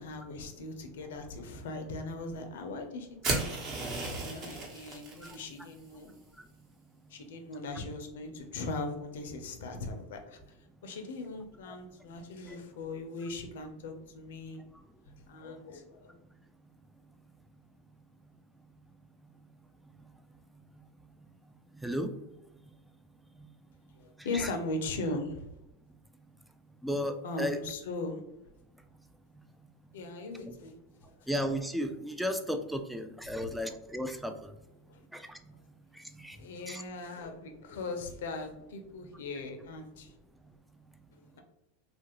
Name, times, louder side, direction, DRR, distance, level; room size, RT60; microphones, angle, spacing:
voice 1, 0.0-3.6 4.1-6.1 7.1-10.6 10.8-14.6 15.3-16.2 24.0-25.5 27.2-28.2 29.9-30.8 31.1-31.2 33.3-33.5 34.9-35.0 35.5-35.6 36.4-40.1 41.2-41.4, left 2 dB, 80° left, 5 dB, 0.6 m, -39 dB
sound 1, 3.2-5.4, right 2 dB, 40° right, 1.0 m, -34 dB
voice 2, 21.8-22.1 24.3-24.5 26.8-27.6 30.4-30.5 31.3-34.4 35.1-35.2 36.2-36.4 36.7-36.8, equal, ahead, 7 dB, 0.4 m, -33 dB
2.9 x 2.5 x 2.9 m, 0.88 s
hypercardioid pair, 115°, 0 cm